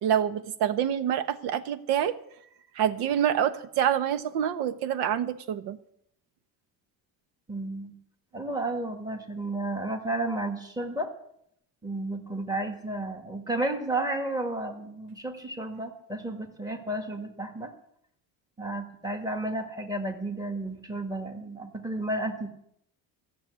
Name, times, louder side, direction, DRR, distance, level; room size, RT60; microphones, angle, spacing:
voice 1, 0.0-2.1 2.7-5.8, right 9 dB, 75° right, 12 dB, 1.2 m, -26 dB
voice 2, 7.5-7.9 8.3-11.1 11.8-17.7 18.6-22.5, right 2 dB, 10° right, 4 dB, 1.7 m, -32 dB
15.0 x 6.8 x 9.6 m, 0.73 s
cardioid pair, 155°, 40 cm